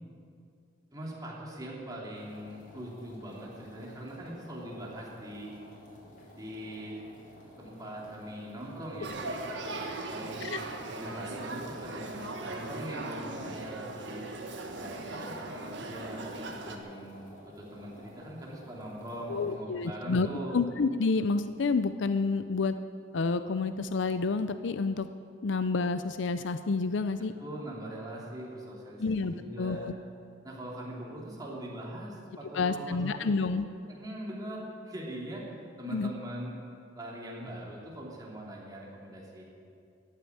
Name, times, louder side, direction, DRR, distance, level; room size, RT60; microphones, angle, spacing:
voice 1, 0.9-5.5 6.3-7.0 7.6-9.7 10.0-10.4 10.9-12.2 12.5-14.2 14.7-20.6 27.2-29.0 29.3-29.9 30.4-33.6 33.9-35.5 35.8-36.6 36.9-39.4, right 1 dB, 20° right, -4 dB, 3.1 m, -42 dB
sound 1, 2.1-19.5, left 1 dB, 45° left, 4.2 m, -53 dB
Male speech man speaking / Child speech kid speaking / Conversation, 9.0-16.8, right 2 dB, 65° right, 1.5 m, -39 dB
voice 2, 19.3-20.3 20.5-22.8 23.1-25.1 25.4-27.3 29.0-29.9 32.5-33.7 35.9-36.1, left 4 dB, 70° left, 11 dB, 0.5 m, -29 dB
14.0 x 8.7 x 9.7 m, 2.4 s
head